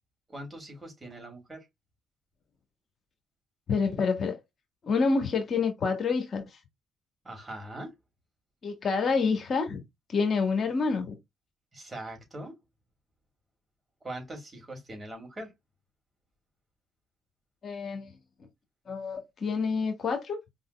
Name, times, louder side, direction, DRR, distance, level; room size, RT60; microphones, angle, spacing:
voice 1, 0.3-1.7 7.2-7.9 11.7-12.5 14.0-15.5, right 1 dB, 25° right, 3.3 m, -41 dB
voice 2, 3.7-4.4 4.8-6.4 8.6-9.8 10.1-11.2 17.6-18.1 18.9-20.4, left 4 dB, 50° left, 1.6 m, -27 dB
4.8 x 4.0 x 2.3 m
supercardioid pair, 65°, 0 cm